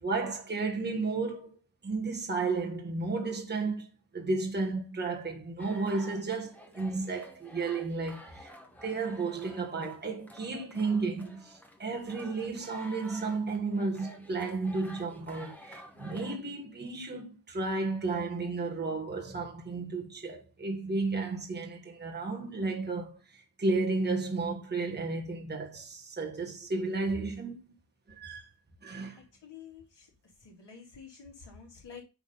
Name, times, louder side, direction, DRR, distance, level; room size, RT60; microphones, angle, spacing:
voice 1, 0.0-1.6 1.8-3.9 4.1-8.5 8.8-23.2 23.6-27.6 28.1-28.4 28.8-29.2, right 3 dB, 25° right, 1.3 m, -33 dB
sound 1, 5.6-16.4, equal, 5° left, 1.2 m, -51 dB
voice 2, 29.0-30.1 30.4-32.0, left 6 dB, 90° left, 2.8 m, -50 dB
9.7 x 3.6 x 3.8 m
wide cardioid pair, 160°, 41 cm